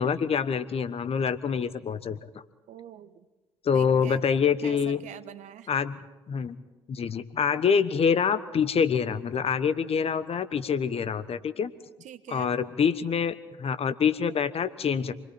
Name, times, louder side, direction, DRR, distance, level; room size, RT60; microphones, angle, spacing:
voice 1, 0.0-2.2 3.6-5.0 5.7-6.0 6.3-6.6 6.9-11.7 12.3-15.2, left 6 dB, 45° left, 13 dB, 1.2 m, -26 dB
voice 2, 2.7-3.3 3.7-4.2 4.6-5.7 12.0-12.5, right 10 dB, 60° right, 12 dB, 1.2 m, -44 dB
27.5 x 21.5 x 4.4 m, 1.1 s
hypercardioid pair, 50°, 14 cm